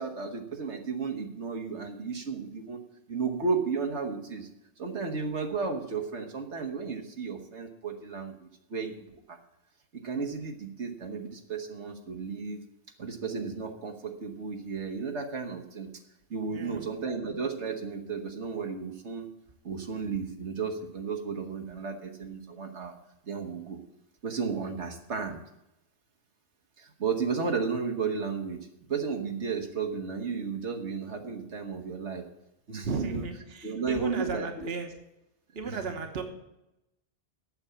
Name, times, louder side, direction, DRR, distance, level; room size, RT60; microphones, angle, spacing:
voice 1, 0.0-2.8 3.1-4.5 4.8-9.4 9.9-12.6 13.0-15.9 16.3-19.3 19.6-22.9 23.2-23.8 24.2-25.4 26.8-32.2 32.7-33.3 33.6-34.7 35.6-35.8, right 5 dB, 85° right, 4 dB, 1.7 m, -33 dB
voice 2, 16.5-16.9 32.8-34.9 35.5-36.2, right 4 dB, 60° right, 5 dB, 1.4 m, -35 dB
8.8 x 7.1 x 8.5 m, 0.89 s
omnidirectional pair, 1.1 m